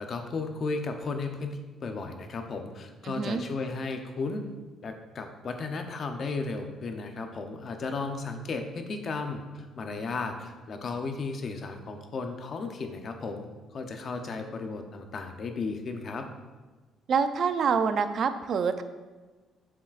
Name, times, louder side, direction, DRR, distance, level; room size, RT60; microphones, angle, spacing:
voice 1, 0.0-4.4 4.8-13.5 13.7-16.3, left 3 dB, 35° left, 6 dB, 0.6 m, -34 dB
voice 2, 3.0-3.4 17.1-18.8, right 6 dB, 45° right, 10 dB, 0.4 m, -26 dB
7.2 x 7.0 x 2.4 m, 1.3 s
cardioid pair, 160°, 0 cm